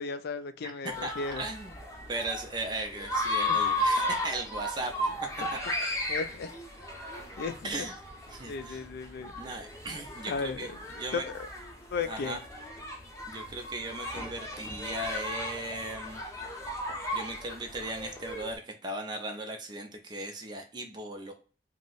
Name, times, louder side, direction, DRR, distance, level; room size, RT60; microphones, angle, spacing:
voice 1, 0.0-1.4 6.1-6.5 7.4-7.7 8.5-9.3 10.3-10.7 11.1-11.2 11.9-12.4, left 4 dB, 60° left, 10 dB, 0.3 m, -34 dB
voice 2, 0.6-1.8 2.1-4.9 5.7-5.8 7.6-8.0 8.3-8.8 9.4-11.3 12.0-12.4 13.3-16.2 17.1-21.3, right 2 dB, 25° right, 4 dB, 0.4 m, -37 dB
sound 1, 0.9-18.5, left 1 dB, 15° left, 0.6 m, -35 dB
2.6 x 2.0 x 3.7 m, 0.38 s
head